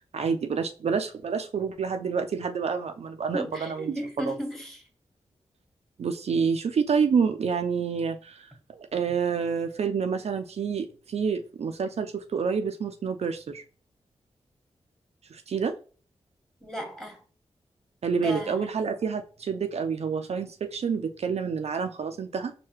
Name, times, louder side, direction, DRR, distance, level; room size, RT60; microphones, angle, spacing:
voice 1, 0.1-4.4 6.0-13.6 15.3-15.8 18.0-22.5, right 6 dB, 65° right, 0.4 m, -28 dB
voice 2, 3.3-4.9 16.6-17.2 18.2-18.6, equal, 5° left, 1.3 m, -35 dB
4.6 x 2.2 x 3.1 m
cardioid pair, 45°, 12 cm